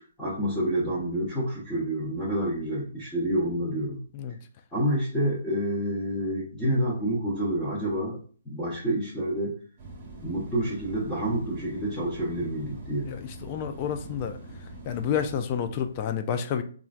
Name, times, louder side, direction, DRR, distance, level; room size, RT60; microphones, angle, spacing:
voice 1, 0.2-4.0 4.7-8.2 8.5-9.6 10.2-13.1, right 1 dB, 5° left, -10 dB, 0.8 m, -28 dB
sound 1, 9.8-16.1, right 2 dB, 35° right, 0.9 m, -44 dB
voice 2, 13.0-14.4 14.8-16.6, left 8 dB, 35° left, 8 dB, 0.3 m, -29 dB
3.1 x 2.4 x 2.4 m, 0.43 s
hypercardioid pair, 145°, 0 cm